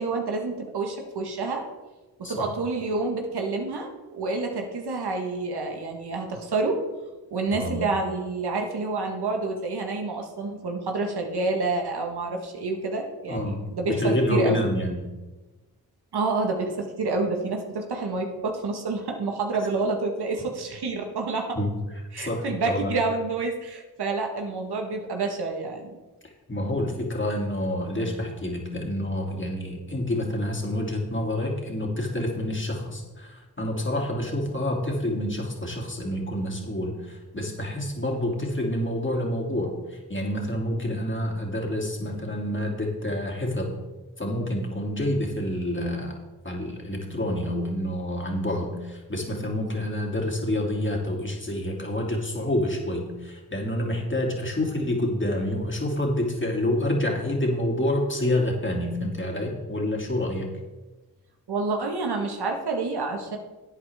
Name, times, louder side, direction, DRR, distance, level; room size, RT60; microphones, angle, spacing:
voice 1, 0.0-1.6 2.2-6.8 7.3-14.6 16.1-21.6 22.1-26.0 61.5-63.4, right 3 dB, 75° right, 3 dB, 1.6 m, -28 dB
voice 2, 13.3-15.0 21.6-21.7 22.2-22.9 26.2-43.7 44.2-46.2 46.4-60.5, left 1 dB, 30° left, -1 dB, 3.0 m, -28 dB
12.0 x 8.4 x 3.6 m, 1.2 s
cardioid pair, 45°, 40 cm